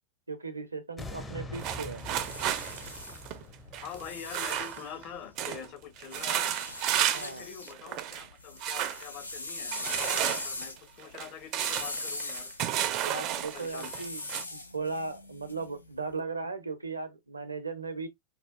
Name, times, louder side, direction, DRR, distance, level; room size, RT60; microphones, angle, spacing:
voice 1, 0.3-2.0 7.1-7.5 13.0-14.2 14.5-18.1, right 4 dB, 80° right, 0.7 m, -37 dB
sound 1, 1.0-6.1 6.5-6.6, left 2 dB, 15° left, 0.6 m, -45 dB
sound 2, 1.5-5.0 5.4-5.7 6.0-7.4 7.7-8.3 8.6-9.0 9.7-14.4, right 11 dB, 40° right, 0.5 m, -32 dB
sound 3, 1.9-5.4 6.1-7.8 8.1-16.0, left 2 dB, 80° left, 0.6 m, -41 dB
voice 2, 3.8-6.6 7.1-12.5 13.2-14.0, left 7 dB, 40° left, 0.8 m, -45 dB
4.2 x 2.3 x 2.3 m
figure-of-eight pair, 90°, 0 cm